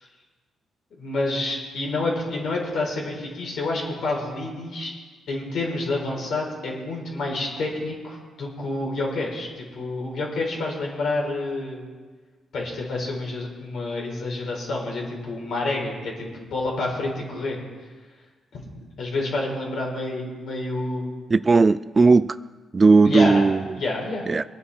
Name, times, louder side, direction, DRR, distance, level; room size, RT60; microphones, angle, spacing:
voice 1, 1.0-4.9 5.3-11.8 12.5-17.6 18.5-18.7 19.0-21.1 23.0-23.4 23.8-24.3, left 2 dB, 65° left, 4.7 m, -28 dB
voice 2, 21.3-22.4 22.7-23.6 24.3-24.4, right 4 dB, 30° right, 0.3 m, -17 dB
23.5 x 9.4 x 4.3 m
cardioid pair, 100°, 0 cm